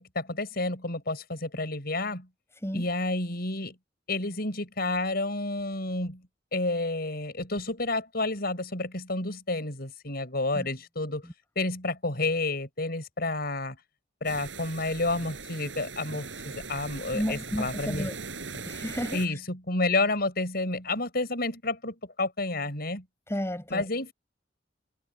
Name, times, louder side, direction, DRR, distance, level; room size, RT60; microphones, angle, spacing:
voice 1, 0.0-2.3 2.7-3.8 4.1-6.2 6.5-11.3 11.5-13.8 14.2-18.1 19.1-23.0 23.7-24.1, left 2 dB, 55° left, 6.5 m, -30 dB
sound 1, 14.2-19.3, right 4 dB, 85° right, 5.5 m, -40 dB
voice 2, 17.1-18.1 18.5-19.4 23.3-23.9, equal, 15° left, 5.8 m, -32 dB
head